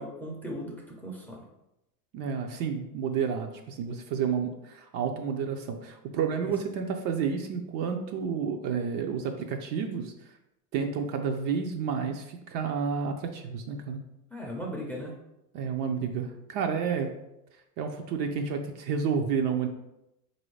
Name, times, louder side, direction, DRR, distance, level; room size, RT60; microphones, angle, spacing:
voice 1, 0.0-1.4 6.4-6.5 14.3-15.1, equal, 5° left, -1 dB, 0.5 m, -37 dB
voice 2, 2.1-10.1 10.7-14.0 15.5-17.1 17.8-19.7, right 6 dB, 45° right, 4 dB, 0.5 m, -30 dB
4.0 x 2.7 x 3.1 m, 0.87 s
hypercardioid pair, 105°, 48 cm